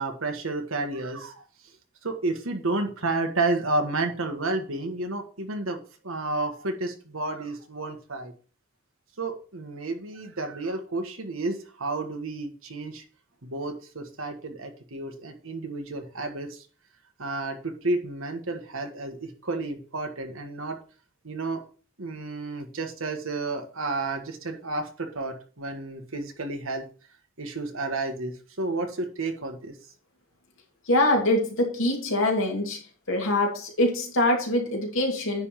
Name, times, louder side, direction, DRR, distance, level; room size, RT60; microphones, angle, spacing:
voice 1, 0.0-1.4 2.0-5.8 6.0-8.3 9.2-13.0 13.4-16.6 17.2-20.8 21.2-21.6 22.0-26.8 27.4-29.7, right 2 dB, 85° right, 5 dB, 1.6 m, -31 dB
voice 2, 30.9-32.8 33.1-35.5, left 1 dB, 75° left, 1 dB, 2.5 m, -24 dB
9.7 x 3.6 x 5.8 m, 0.37 s
head